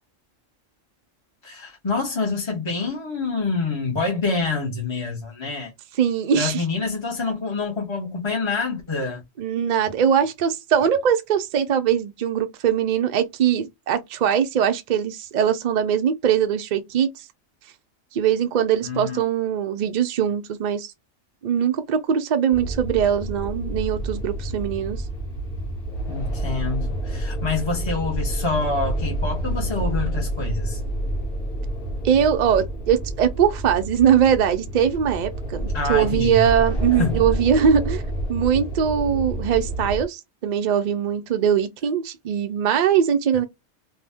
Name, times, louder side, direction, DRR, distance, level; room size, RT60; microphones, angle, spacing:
voice 1, 1.4-5.7 6.3-9.2 18.8-19.2 26.1-30.8 35.7-36.4 37.0-37.1, left 3 dB, 25° left, 0.7 m, -26 dB
voice 2, 6.0-6.6 9.4-17.3 18.1-20.9 21.4-25.0 32.0-38.0 38.3-43.4, right 8 dB, 75° right, 0.4 m, -21 dB
sound 1, 22.5-40.0, right 1 dB, 45° left, 1.2 m, -29 dB
2.7 x 2.1 x 3.4 m
omnidirectional pair, 1.4 m